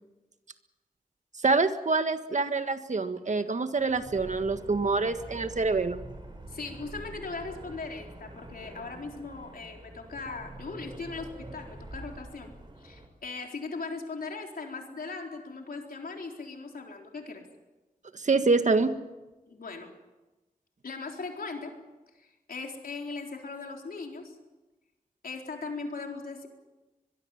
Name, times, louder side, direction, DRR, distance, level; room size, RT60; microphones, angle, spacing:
voice 1, 1.4-6.0 18.1-18.9, right 3 dB, 55° right, 8 dB, 1.7 m, -26 dB
sound 1, 3.8-13.1, right 1 dB, 35° right, 4.7 m, -45 dB
voice 2, 6.5-12.5 12.8-17.4 19.5-19.9 20.8-21.7 22.2-24.4 25.2-26.5, left 4 dB, 90° left, 2 dB, 4.1 m, -39 dB
24.0 x 21.5 x 7.3 m, 1.1 s
wide cardioid pair, 105°, 15 cm